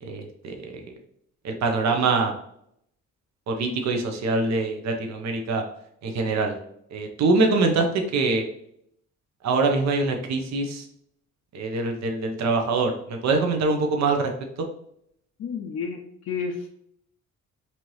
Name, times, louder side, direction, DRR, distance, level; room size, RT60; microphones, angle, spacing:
voice 1, 0.0-0.9 1.4-2.3 3.5-5.7 6.0-6.5 6.9-7.9 8.1-8.5 9.4-10.8 11.5-14.3, right 3 dB, 60° right, 3 dB, 0.7 m, -24 dB
voice 2, 15.4-16.7, left 5 dB, 55° left, 2 dB, 0.5 m, -31 dB
4.3 x 2.7 x 3.1 m, 0.71 s
cardioid pair, 90°, 30 cm